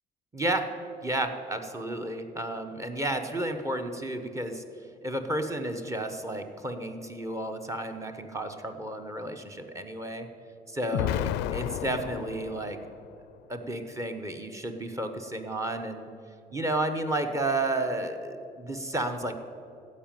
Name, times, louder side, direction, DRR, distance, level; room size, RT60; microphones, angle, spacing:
voice 1, 0.3-0.7 1.0-4.6 5.0-10.3 10.7-12.8 13.5-16.1 16.5-19.3, right 1 dB, 20° right, 6 dB, 1.1 m, -32 dB
Explosion, 10.9-13.1, left 13 dB, 90° left, 0.4 m, -32 dB
14.5 x 5.3 x 9.1 m, 2.6 s
cardioid pair, 110°, 17 cm